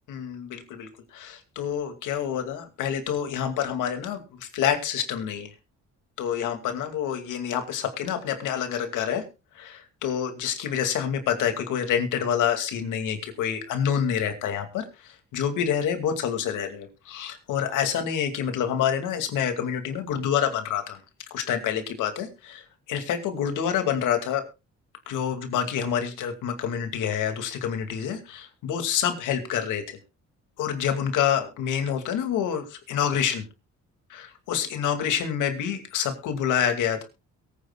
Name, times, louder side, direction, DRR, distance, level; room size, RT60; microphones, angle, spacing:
voice 1, 0.1-5.5 6.2-9.2 9.6-21.0 21.3-24.4 25.1-29.8 30.6-33.4 34.1-37.0, left 8 dB, 85° left, 6 dB, 2.5 m, -27 dB
22.5 x 9.5 x 2.4 m, 0.28 s
cardioid pair, 90°, 30 cm